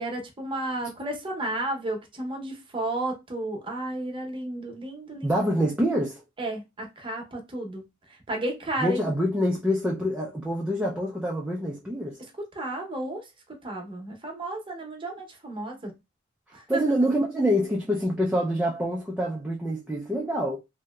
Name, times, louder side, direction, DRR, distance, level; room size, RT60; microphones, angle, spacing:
voice 1, 0.0-5.4 6.4-7.8 8.1-9.0 12.5-15.9 16.5-16.8, right 1 dB, 25° right, 0.8 m, -33 dB
voice 2, 5.2-6.2 8.8-12.2 16.7-20.6, equal, 5° right, 0.4 m, -26 dB
2.9 x 2.7 x 2.3 m
head